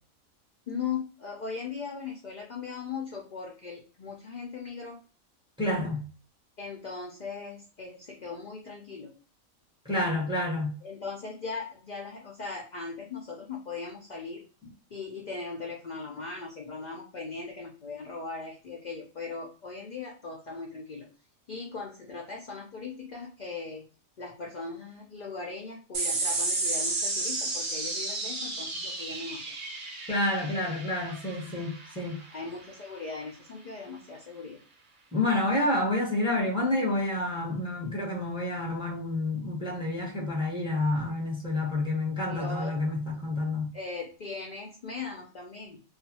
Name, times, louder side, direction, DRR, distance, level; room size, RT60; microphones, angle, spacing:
voice 1, 0.7-5.0 6.6-9.2 10.8-14.4 14.9-21.1 21.5-23.8 24.2-29.5 32.3-34.6 42.3-42.8 43.7-45.8, left 4 dB, 65° left, 0.4 m, -39 dB
voice 2, 5.6-6.1 9.8-10.8 30.1-32.2 35.1-43.7, left 2 dB, 5° right, 0.6 m, -29 dB
sound 1, 25.9-32.7, right 2 dB, 45° right, 0.7 m, -32 dB
2.4 x 2.4 x 2.7 m
omnidirectional pair, 1.4 m